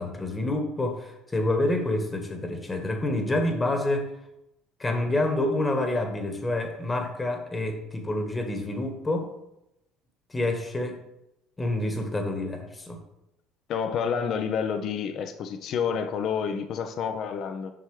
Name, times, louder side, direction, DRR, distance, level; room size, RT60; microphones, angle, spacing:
voice 1, 0.0-4.1 4.8-9.3 10.3-11.0 11.6-13.0, left 1 dB, 20° left, 5 dB, 1.3 m, -28 dB
voice 2, 13.7-17.7, left 7 dB, 55° left, 8 dB, 0.6 m, -29 dB
7.7 x 5.5 x 3.2 m, 0.86 s
hypercardioid pair, 70°, 0 cm